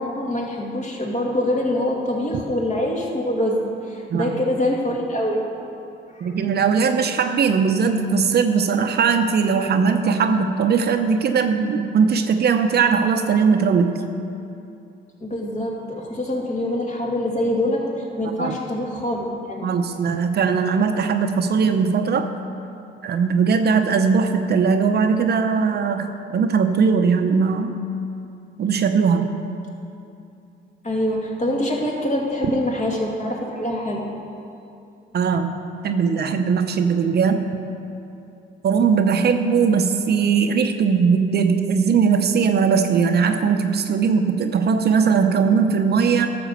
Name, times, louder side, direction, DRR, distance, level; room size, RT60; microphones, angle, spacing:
voice 1, 0.0-5.4 6.1-6.3 15.2-19.7 30.8-34.0, left 1 dB, 35° left, -2 dB, 2.4 m, -24 dB
voice 2, 6.2-14.0 18.4-18.6 19.6-22.3 23.0-27.7 28.6-29.3 35.1-35.5 35.8-37.4 38.6-46.3, right 5 dB, 55° right, 6 dB, 0.8 m, -19 dB
12.0 x 6.9 x 6.7 m, 2.7 s
cardioid pair, 90°, 20 cm